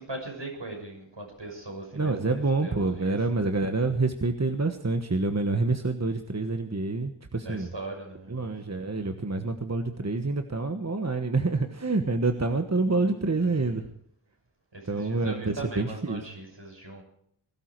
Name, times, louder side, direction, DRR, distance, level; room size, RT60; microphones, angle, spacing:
voice 1, 0.0-3.2 7.4-8.9 13.4-13.9 14.7-17.0, right 2 dB, 65° right, 1 dB, 6.2 m, -40 dB
voice 2, 1.9-7.7 8.3-13.9 14.9-16.2, right 3 dB, 35° right, 6 dB, 1.3 m, -27 dB
21.0 x 13.0 x 4.6 m, 0.69 s
wide cardioid pair, 50°, 47 cm